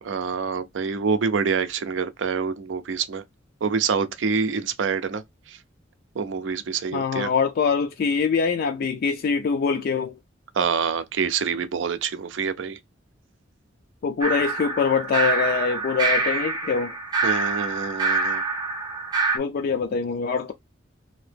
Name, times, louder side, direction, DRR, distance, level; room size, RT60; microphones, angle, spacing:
voice 1, 0.1-3.2 3.6-5.2 5.5-5.6 6.2-7.3 10.6-12.8 17.2-18.4, right 5 dB, 75° right, 0.5 m, -26 dB
voice 2, 6.9-10.2 14.0-16.9 19.3-20.5, left 5 dB, 50° left, 0.3 m, -24 dB
sound 1, 14.2-19.4, right 3 dB, 25° right, 0.6 m, -25 dB
2.8 x 2.7 x 3.3 m
head